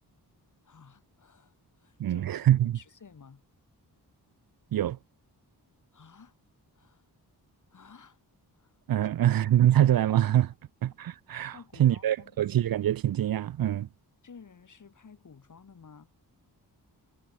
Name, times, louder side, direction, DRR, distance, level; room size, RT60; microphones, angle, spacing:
voice 1, 0.6-3.4 5.9-6.4 6.7-7.1 7.7-8.2 8.5-8.7 9.2-9.3 11.5-12.4 14.2-16.1, left 5 dB, 50° left, 2.2 m, -53 dB
voice 2, 2.0-2.8 4.7-5.0 8.9-10.5 10.8-13.9, right 12 dB, 60° right, 0.5 m, -24 dB
wide cardioid pair, 105°, 40 cm